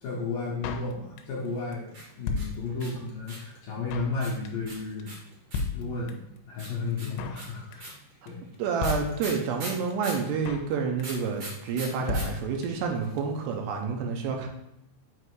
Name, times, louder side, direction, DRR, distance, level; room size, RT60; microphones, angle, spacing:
voice 1, 0.0-5.1 5.7-6.2 6.5-7.9 8.3-8.4, left 3 dB, 75° left, -5 dB, 2.2 m, -33 dB
Drum kit, 0.6-1.5 1.7-1.8 2.0-3.1 3.4-3.5 3.6-4.2 4.4-4.7 5.0-5.1 5.3-5.4 5.5-6.4 6.6-6.7 6.9-7.5 7.7-8.0 8.3-8.4 8.5-8.6 8.8-9.6 9.9-10.0 10.2-10.7 11.0-11.3 11.5-11.6 11.8-11.9 12.1-12.9 13.2-13.3 13.4-13.5, left 4 dB, 90° left, 2.8 m, -34 dB
sound 1, 1.9-3.6 4.2-5.8 6.6-10.3 11.0-12.2 12.5-12.6 12.8-13.3, right 2 dB, 65° right, 1.2 m, -40 dB
voice 2, 8.6-14.5, right 5 dB, 80° right, 2 dB, 2.7 m, -29 dB
7.8 x 2.7 x 4.7 m, 0.82 s
omnidirectional pair, 5.0 m